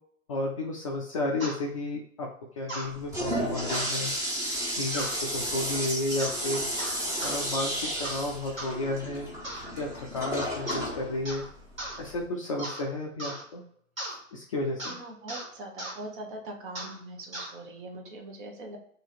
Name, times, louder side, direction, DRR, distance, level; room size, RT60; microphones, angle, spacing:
voice 1, 0.3-2.3 2.6-4.1 4.8-6.7 7.2-9.3 9.8-11.4 12.0-13.6 14.3-14.9, left 2 dB, 30° left, 0 dB, 0.3 m, -32 dB
sound 1, 1.4-1.6 2.7-2.9 3.7-3.9 4.9-5.2 6.2-6.4 6.8-7.4 8.0-8.2 8.6-8.8 9.4-9.7 10.7-10.9 11.2-11.5 11.8-12.0 12.6-12.8 13.2-13.4 14.0-14.2 14.8-15.0 15.3-15.5 15.8-16.0 16.7-17.0 17.3-17.5, right 1 dB, 85° right, 1.6 m, -37 dB
Toilet flush, 2.8-12.2, equal, 10° right, 0.7 m, -33 dB
voice 2, 14.8-18.8, right 2 dB, 40° right, 2 dB, 1.0 m, -41 dB
2.9 x 2.8 x 4.1 m, 0.67 s
figure-of-eight pair, 110°, 39 cm